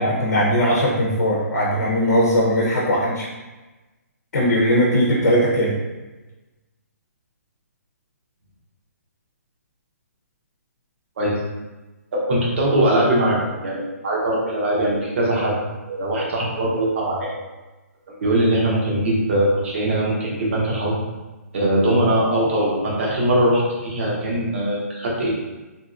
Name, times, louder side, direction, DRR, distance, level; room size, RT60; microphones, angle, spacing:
voice 1, 0.0-3.3 4.3-5.7, equal, 80° left, -4 dB, 0.7 m, -19 dB
voice 2, 12.1-15.6 15.8-17.3 18.1-20.9 21.5-25.3, right 1 dB, 50° right, -4 dB, 1.0 m, -21 dB
2.8 x 2.7 x 2.4 m, 1.2 s
hypercardioid pair, 160°, 9 cm